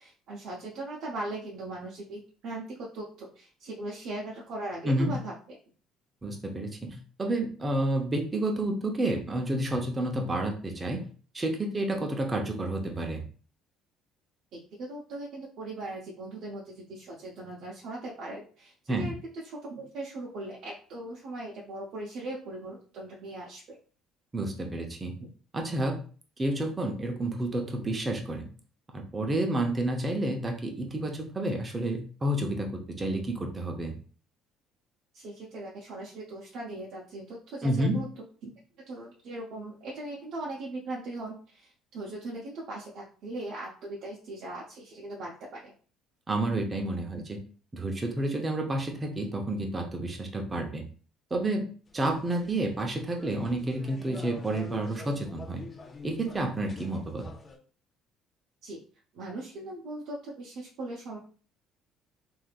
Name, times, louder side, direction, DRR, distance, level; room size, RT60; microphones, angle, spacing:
voice 1, 0.0-5.3 14.5-19.1 19.4-23.8 25.2-25.3 35.1-38.1 38.4-38.5 38.8-45.7 47.1-47.2 58.6-58.8 59.1-61.2, right 2 dB, 65° right, -4 dB, 0.7 m, -39 dB
voice 2, 6.2-11.0 11.3-13.2 18.9-19.1 24.3-25.1 25.5-26.0 26.4-28.5 28.9-33.9 37.6-38.0 46.3-47.2 47.7-50.8 51.3-51.7 51.9-55.6 56.0-57.3, right 1 dB, 20° right, 2 dB, 0.7 m, -30 dB
sound 1, 51.9-57.6, left 4 dB, 30° left, 0.7 m, -46 dB
3.3 x 2.7 x 2.4 m, 0.40 s
cardioid pair, 105°, 0 cm